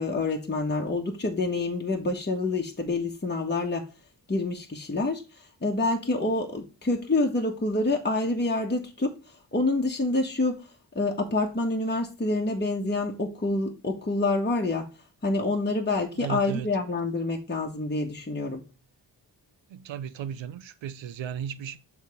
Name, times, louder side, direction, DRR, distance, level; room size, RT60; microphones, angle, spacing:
voice 1, 0.0-3.8 4.3-5.2 5.6-9.1 9.5-10.5 10.9-14.9 15.2-18.6, left 2 dB, 25° left, 1.4 m, -27 dB
voice 2, 16.2-16.7 19.7-21.8, right 8 dB, 80° right, 0.7 m, -35 dB
6.6 x 3.6 x 4.9 m
cardioid pair, 45°, 44 cm